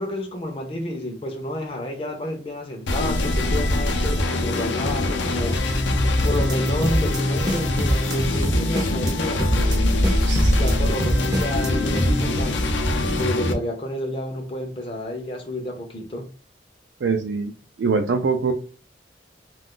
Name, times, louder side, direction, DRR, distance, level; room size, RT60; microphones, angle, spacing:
voice 1, 0.0-9.8 10.5-12.8 13.1-16.3, left 1 dB, 30° left, 0.5 m, -30 dB
sound 1, 2.9-13.5, left 1 dB, 85° left, 0.6 m, -23 dB
sound 2, 6.2-6.6 6.8-7.2 7.5-8.2 8.4-9.1 9.4-9.8 10.0-10.7 11.0-11.7 12.0-12.1, equal, 20° right, 0.5 m, -24 dB
voice 2, 10.3-10.6 17.0-17.5 17.8-18.5, right 5 dB, 75° right, 0.4 m, -23 dB
2.4 x 2.4 x 3.6 m
head